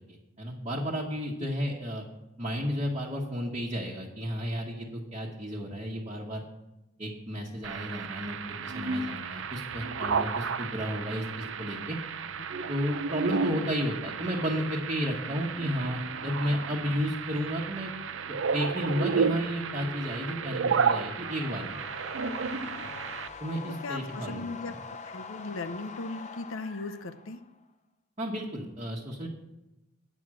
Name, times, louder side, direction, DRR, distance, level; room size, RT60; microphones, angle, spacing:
voice 1, 0.1-2.0 2.4-6.4 7.0-12.0 12.7-17.9 18.5-21.8 23.4-24.7 28.2-29.3, equal, 30° right, -4 dB, 1.2 m, -32 dB
sound 1, 7.6-23.3, right 5 dB, 70° right, 0.5 m, -32 dB
sound 2, 19.3-22.5 26.2-27.0, left 3 dB, 60° left, 1.2 m, -47 dB
sound 3, 20.6-27.6, left 5 dB, 35° left, 0.6 m, -45 dB
voice 2, 23.8-27.4, left 3 dB, 85° left, 10 dB, 0.8 m, -38 dB
9.1 x 6.2 x 7.5 m, 0.98 s
head